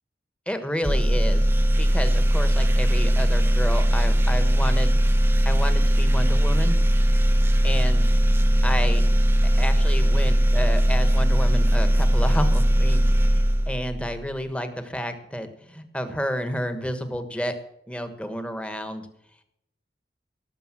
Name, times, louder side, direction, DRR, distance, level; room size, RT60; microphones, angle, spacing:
voice 1, 0.5-1.5 1.8-5.0 5.4-6.8 7.6-8.0 8.6-9.0 9.4-17.5 17.9-19.1, equal, 5° left, 8 dB, 1.3 m, -30 dB
sound 1, 0.8-14.2, equal, 15° right, 0.7 m, -19 dB
17.5 x 6.9 x 7.6 m, 0.78 s
head